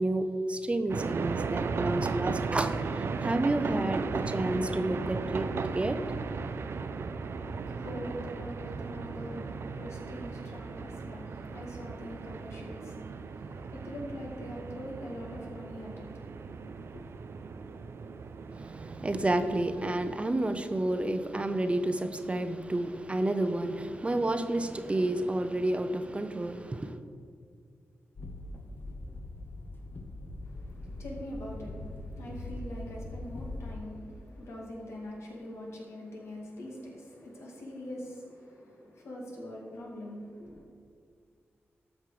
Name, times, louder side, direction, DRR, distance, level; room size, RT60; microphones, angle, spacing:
voice 1, 0.0-6.0 18.5-27.0, right 1 dB, 25° right, 0.6 m, -30 dB
sound 1, 0.9-20.2, right 4 dB, 65° right, 0.5 m, -36 dB
voice 2, 7.4-17.0 30.4-40.6, equal, 80° left, 2.2 m, -43 dB
sound 2, 28.2-33.7, left 2 dB, 50° left, 1.0 m, -41 dB
13.5 x 5.4 x 4.9 m
cardioid pair, 75°, 5 cm